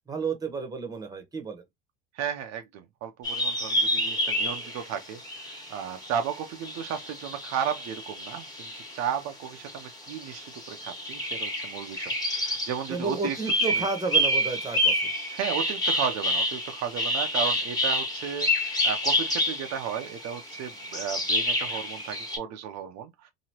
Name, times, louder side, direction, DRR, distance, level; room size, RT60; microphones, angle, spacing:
voice 1, 0.1-1.6 12.9-15.1, right 4 dB, 10° right, 1.0 m, -32 dB
voice 2, 2.1-13.4 13.8-13.9 15.3-23.3, right 8 dB, 60° right, 0.6 m, -34 dB
sound 1, 3.2-9.1 9.5-22.4, left 1 dB, 10° left, 1.3 m, -29 dB
2.9 x 2.7 x 2.8 m
supercardioid pair, 95°, 31 cm